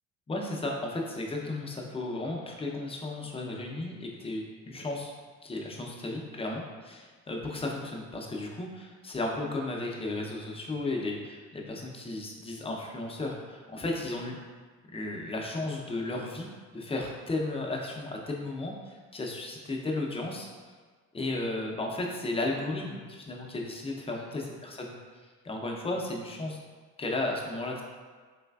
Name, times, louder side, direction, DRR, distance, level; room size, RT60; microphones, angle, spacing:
voice 1, 0.3-5.1 5.4-14.4 14.9-20.5 21.1-24.9 25.4-26.6 27.0-27.8, left 2 dB, 20° left, 0 dB, 0.4 m, -34 dB
3.2 x 3.1 x 2.2 m, 1.5 s
cardioid pair, 100°, 32 cm